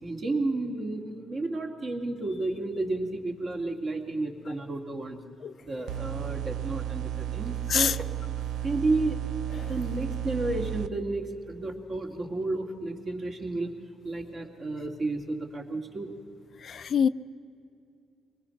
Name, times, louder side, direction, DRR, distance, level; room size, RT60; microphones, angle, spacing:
voice 1, 0.0-5.2 5.6-7.9 8.6-9.2 9.7-13.7 14.0-16.1, right 2 dB, 45° right, 2 dB, 2.4 m, -32 dB
sound 1, 5.9-10.9, right 12 dB, 75° right, 0.5 m, -33 dB
voice 2, 16.6-17.1, left 7 dB, 55° left, 13 dB, 0.4 m, -25 dB
24.0 x 20.0 x 5.9 m, 2.5 s
cardioid pair, 90°, 0 cm